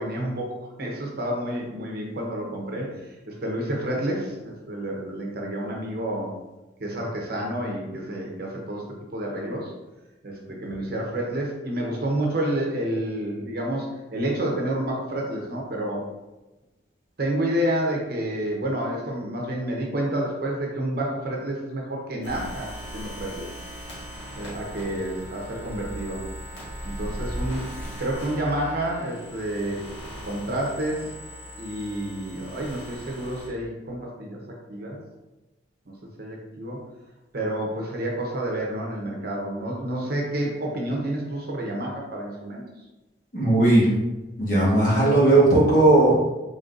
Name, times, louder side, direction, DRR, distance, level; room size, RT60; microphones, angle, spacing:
voice 1, 0.0-2.9 3.3-6.3 6.8-8.8 9.1-9.7 10.2-13.9 14.1-16.0 17.2-23.5 24.4-26.2 26.8-27.7 28.0-29.8 30.2-31.1 31.6-34.4 34.7-35.0 35.9-36.8 37.3-42.6, right 1 dB, 55° right, -1 dB, 0.8 m, -29 dB
sound 1, 22.2-33.5, equal, 80° left, 1.5 m, -38 dB
voice 2, 43.3-43.9 44.4-46.4, right 2 dB, 45° left, -6 dB, 1.4 m, -17 dB
3.9 x 3.7 x 2.6 m, 1.0 s
head